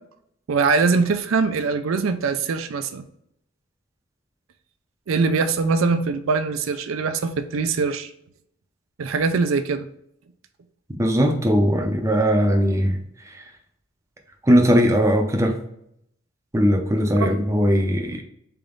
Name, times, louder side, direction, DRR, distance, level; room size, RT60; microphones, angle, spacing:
voice 1, 0.5-3.0 5.1-8.1 9.0-9.9 17.2-17.3, right 4 dB, 80° right, 9 dB, 0.4 m, -22 dB
voice 2, 11.0-13.0 13.3-13.4 14.4-15.6 16.5-18.2, equal, 15° right, 3 dB, 0.5 m, -19 dB
3.9 x 3.5 x 3.7 m, 0.73 s
head